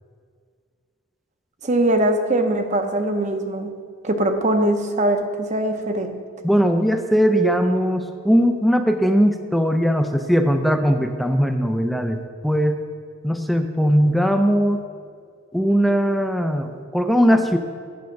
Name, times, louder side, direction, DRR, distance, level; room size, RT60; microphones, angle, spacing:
voice 1, 1.6-3.7 4.0-6.2, right 1 dB, 35° right, 6 dB, 0.7 m, -21 dB
voice 2, 6.4-12.9 13.2-14.8 15.5-17.6, equal, ahead, 5 dB, 0.4 m, -19 dB
8.6 x 6.3 x 5.8 m, 2.1 s
head